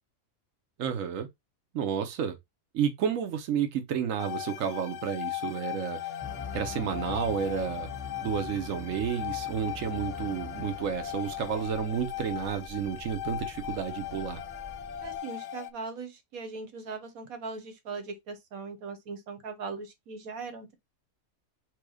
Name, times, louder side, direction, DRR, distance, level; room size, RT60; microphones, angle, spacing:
voice 1, 0.8-1.3 1.7-2.4 2.7-6.1 6.5-7.9 8.2-14.4, right 8 dB, 70° right, 1.2 m, -31 dB
sound 1, 4.2-15.7, left 12 dB, 65° left, 0.8 m, -38 dB
sound 2, 6.2-15.2, left 3 dB, 5° right, 0.5 m, -44 dB
voice 2, 15.0-20.8, right 4 dB, 90° right, 1.5 m, -39 dB
4.6 x 2.3 x 4.8 m
omnidirectional pair, 1.4 m